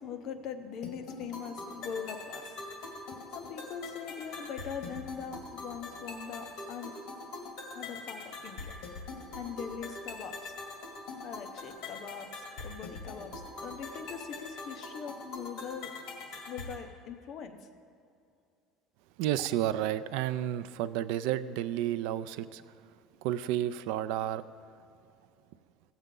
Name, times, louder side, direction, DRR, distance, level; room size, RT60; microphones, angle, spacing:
voice 1, 0.0-2.6 3.3-6.9 7.7-8.7 9.3-10.5 11.2-15.9 16.5-17.7, left 7 dB, 35° left, 6 dB, 0.7 m, -42 dB
sound 1, 0.8-16.8, left 3 dB, 55° left, 2.1 m, -43 dB
voice 2, 19.2-22.8 23.2-24.4, right 12 dB, 65° right, 14 dB, 0.4 m, -31 dB
16.5 x 8.0 x 3.8 m, 2.5 s
cardioid pair, 170°, 0 cm